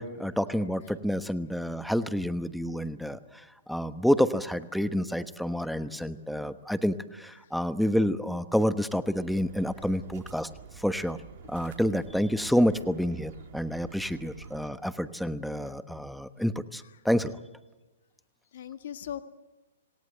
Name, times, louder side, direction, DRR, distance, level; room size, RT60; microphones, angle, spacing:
voice 1, 0.0-10.5 10.8-11.2 11.5-17.3, equal, ahead, 11 dB, 1.1 m, -28 dB
sound 1, 9.1-14.7, right 7 dB, 50° right, 2.9 m, -48 dB
voice 2, 9.3-10.0 11.4-11.7 15.5-15.7 16.8-17.0 18.5-19.2, left 10 dB, 60° left, 9 dB, 1.6 m, -43 dB
27.0 x 18.0 x 8.0 m, 1.1 s
hypercardioid pair, 130°, 0 cm